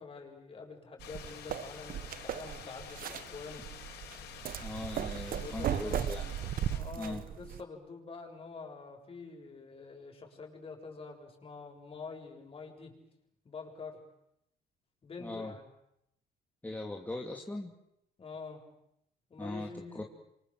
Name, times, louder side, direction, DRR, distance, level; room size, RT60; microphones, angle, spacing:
voice 1, 0.0-3.7 5.4-6.1 6.7-12.9 13.4-14.0 15.0-15.7 18.2-18.6 19.3-20.1, left 4 dB, 35° left, 2 dB, 7.5 m, -46 dB
sound 1, 1.0-6.8, left 9 dB, 80° left, 4.7 m, -49 dB
sound 2, 1.0-7.6, right 10 dB, 55° right, 1.4 m, -37 dB
voice 2, 4.6-6.3 7.0-7.2 15.2-15.5 16.6-17.7 19.4-20.0, left 2 dB, 10° left, 0 dB, 2.7 m, -40 dB
27.5 x 25.0 x 7.8 m, 0.80 s
cardioid pair, 110°, 17 cm